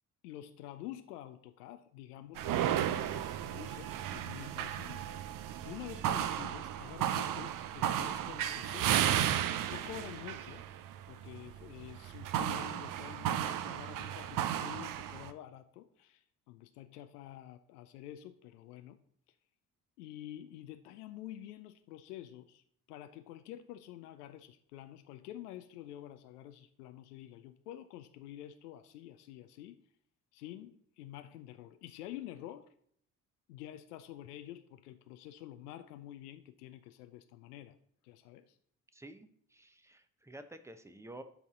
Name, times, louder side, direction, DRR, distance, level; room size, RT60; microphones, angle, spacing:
voice 1, 0.2-5.0 5.6-9.2 9.7-10.7 11.1-19.0 20.0-29.8 30.3-32.7 33.5-37.8 38.0-38.6, left 12 dB, 70° left, 10 dB, 0.6 m, -48 dB
sound 1, 2.4-15.3, right 11 dB, 45° right, 0.6 m, -34 dB
voice 2, 38.9-41.2, right 1 dB, 5° right, 10 dB, 0.8 m, -51 dB
12.0 x 4.1 x 3.7 m, 0.66 s
figure-of-eight pair, 45°, 48 cm